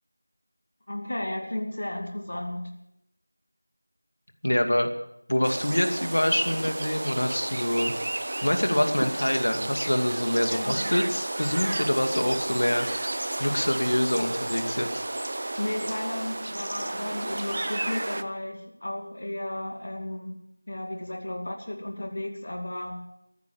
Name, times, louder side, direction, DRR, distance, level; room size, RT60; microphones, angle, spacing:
voice 1, 0.9-2.8 10.5-10.9 15.6-23.1, left 1 dB, 50° left, 3 dB, 2.5 m, -34 dB
voice 2, 4.4-4.9 5.3-7.9 8.4-12.9 13.4-15.0, left 1 dB, 65° left, 6 dB, 2.5 m, -25 dB
sound 1, 5.4-18.2, right 2 dB, 35° right, 0.7 m, -32 dB
14.5 x 13.5 x 7.1 m, 0.79 s
figure-of-eight pair, 175°, 0 cm